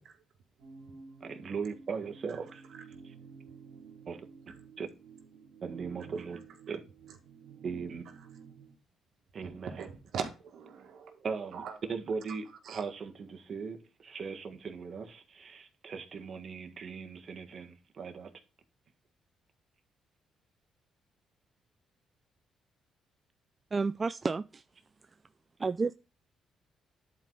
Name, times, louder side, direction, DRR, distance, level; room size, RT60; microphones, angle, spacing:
sound 1, 0.6-8.8, right 6 dB, 85° right, 1.8 m, -52 dB
voice 1, 1.2-2.6 4.1-4.2 4.8-4.9 5.6-6.4 6.7-6.8 7.6-8.0 9.3-9.8 11.2-11.6 11.9-18.3, right 5 dB, 45° right, 1.5 m, -39 dB
voice 2, 9.6-11.2 11.5-11.8 12.6-12.8, right 6 dB, 70° right, 1.9 m, -41 dB
voice 3, 23.7-24.6 25.6-25.9, right 4 dB, 30° right, 0.3 m, -30 dB
10.5 x 4.7 x 3.9 m
cardioid pair, 90°, 0 cm